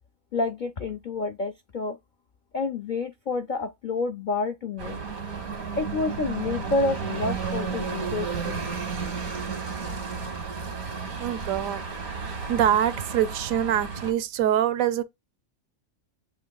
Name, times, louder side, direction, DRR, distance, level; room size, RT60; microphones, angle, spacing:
voice 1, 0.3-2.0 2.5-5.0 5.8-8.7, left 3 dB, 65° left, 0.4 m, -29 dB
sound 1, 4.8-14.1, right 5 dB, 90° right, 1.8 m, -32 dB
voice 2, 11.2-11.8 12.2-15.0, right 10 dB, 75° right, 0.9 m, -25 dB
7.7 x 3.0 x 2.2 m
omnidirectional pair, 1.5 m